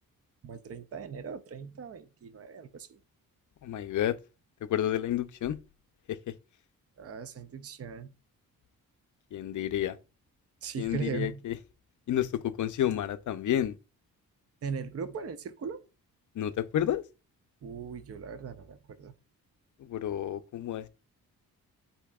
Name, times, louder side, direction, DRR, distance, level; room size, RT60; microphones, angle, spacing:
voice 1, 0.4-3.0 7.0-8.1 10.6-11.4 14.6-15.8 17.6-19.1, right 6 dB, 40° right, 0.6 m, -39 dB
voice 2, 3.6-4.2 4.7-5.6 6.1-6.2 9.3-10.0 10.8-11.5 12.1-13.7 16.4-17.0 19.9-20.9, left 11 dB, 55° left, 0.5 m, -30 dB
8.3 x 2.8 x 2.3 m
cardioid pair, 75°, 36 cm